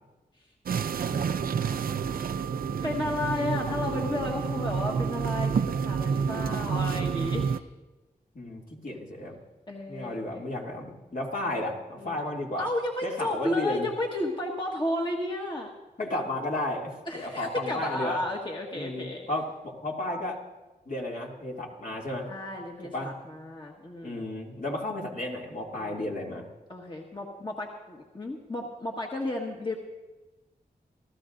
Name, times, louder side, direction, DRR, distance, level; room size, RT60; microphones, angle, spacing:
sound 1, 0.7-7.6, right 6 dB, 65° right, 0.5 m, -29 dB
voice 1, 1.0-1.5 2.8-7.5 9.7-10.5 12.0-12.1 12.6-15.7 17.1-19.3 22.3-24.2 25.8-26.0 26.7-29.8, left 1 dB, 30° left, -1 dB, 1.6 m, -33 dB
voice 2, 8.3-9.4 9.9-12.7 13.0-13.9 16.0-18.2 18.7-20.4 20.9-22.3 22.9-23.1 24.0-26.5, left 1 dB, 60° left, -2 dB, 2.6 m, -33 dB
27.5 x 13.5 x 2.6 m, 1.1 s
wide cardioid pair, 65°, 16 cm